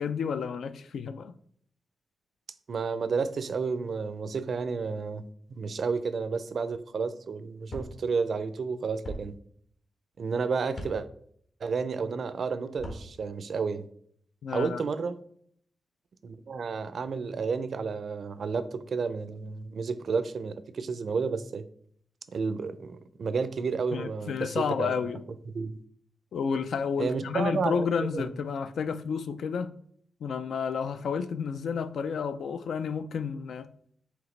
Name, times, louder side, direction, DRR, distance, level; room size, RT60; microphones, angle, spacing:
voice 1, 0.0-1.3 14.4-14.8 23.9-25.2 26.3-29.7 30.2-33.7, left 6 dB, 80° left, 0.3 m, -31 dB
voice 2, 2.7-5.2 5.5-9.3 10.2-11.1 11.6-13.8 14.5-15.1 16.2-21.6 22.3-25.0 25.5-25.7 27.0-27.9 28.1-28.3, right 5 dB, 60° right, 0.4 m, -31 dB
sound 1, 7.7-7.9 9.0-9.2 10.7-10.9 12.7-13.0, equal, 60° left, 1.2 m, -38 dB
4.8 x 3.3 x 3.2 m
wide cardioid pair, 110°, 0 cm